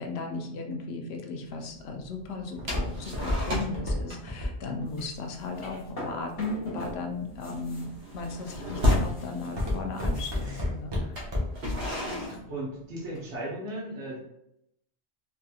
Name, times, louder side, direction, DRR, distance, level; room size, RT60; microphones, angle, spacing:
voice 1, 0.0-11.1, left 3 dB, 70° left, 3 dB, 0.8 m, -36 dB
Walk footsteps, 1.4-6.6 7.2-7.6 8.1-8.5 8.8-11.7 12.1-12.2, left 1 dB, 25° right, 0.8 m, -31 dB
sound 1, 2.7-3.8 4.1-4.4 4.7-5.0 5.4-5.6 5.9-6.2 6.5-9.2 10.1-10.2 11.0-13.3, left 1 dB, 60° right, 1.0 m, -31 dB
sound 2, 4.9-7.0 7.2-10.5, left 1 dB, 45° left, 1.3 m, -44 dB
voice 2, 12.5-14.2, right 1 dB, 85° right, -5 dB, 1.2 m, -36 dB
3.3 x 2.7 x 2.2 m, 0.81 s
omnidirectional pair, 1.2 m